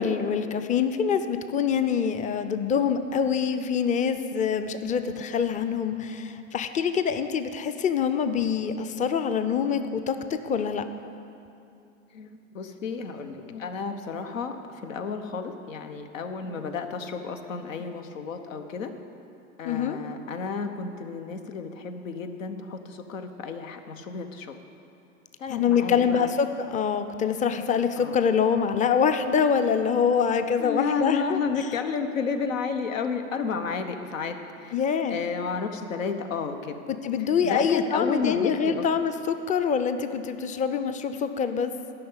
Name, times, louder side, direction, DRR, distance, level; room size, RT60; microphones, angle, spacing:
voice 1, 0.0-10.8 19.6-20.0 25.5-31.4 34.7-35.2 37.0-41.7, left 7 dB, 20° left, 9 dB, 0.5 m, -25 dB
voice 2, 12.1-18.9 19.6-24.6 25.4-26.3 28.0-28.1 30.6-34.7 35.1-36.8 37.2-38.8, left 5 dB, 80° left, 7 dB, 1.1 m, -32 dB
12.0 x 5.9 x 8.0 m, 2.6 s
hypercardioid pair, 100°, 38 cm